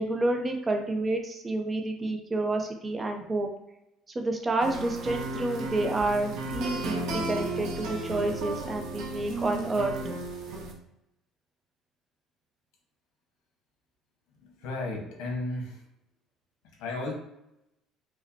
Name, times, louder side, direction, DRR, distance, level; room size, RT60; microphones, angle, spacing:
voice 1, 0.0-3.5 4.1-10.0, right 2 dB, 20° right, 3 dB, 0.5 m, -29 dB
sound 1, 4.6-10.7, right 2 dB, 60° right, 0.8 m, -34 dB
voice 2, 14.3-15.9 16.8-17.1, left 2 dB, 90° left, 1 dB, 1.1 m, -34 dB
5.0 x 2.1 x 2.7 m, 0.87 s
cardioid pair, 165°, 0 cm